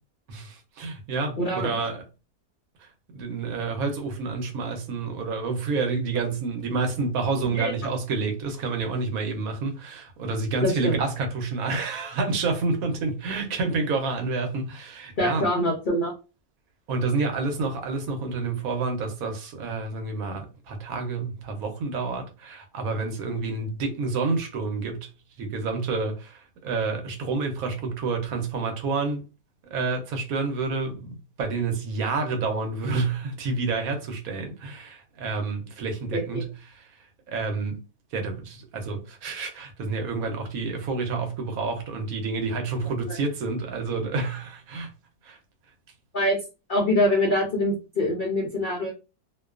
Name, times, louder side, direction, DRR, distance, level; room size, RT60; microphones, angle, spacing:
voice 1, 0.3-2.0 2.8-15.5 16.9-25.1 25.4-29.2 29.7-36.9 37.3-37.8 38.1-44.9 45.2-45.4, right 4 dB, 70° right, 1.0 m, -29 dB
voice 2, 1.4-1.7 7.5-7.7 10.6-11.0 15.2-16.1 36.1-36.4 46.1-46.4 46.7-48.9, left 1 dB, 75° left, 0.4 m, -24 dB
2.5 x 2.2 x 2.3 m
omnidirectional pair, 1.6 m